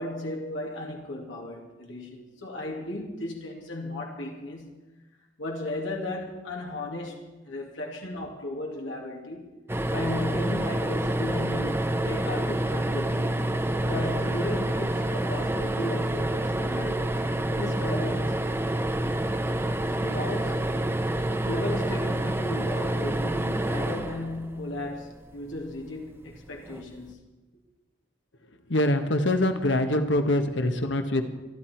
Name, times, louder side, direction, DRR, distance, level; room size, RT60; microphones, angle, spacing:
voice 1, 0.0-4.8 5.4-9.5 9.9-13.4 13.8-17.1 17.6-18.4 20.0-20.7 21.4-27.3, left 1 dB, 90° left, 0 dB, 2.6 m, -35 dB
sound 1, 9.7-25.0 26.6-26.8 27.1-27.2, right 1 dB, 15° right, 0.9 m, -28 dB
voice 2, 28.7-31.3, left 1 dB, 70° left, 7 dB, 1.4 m, -24 dB
23.0 x 12.5 x 4.6 m, 1.1 s
head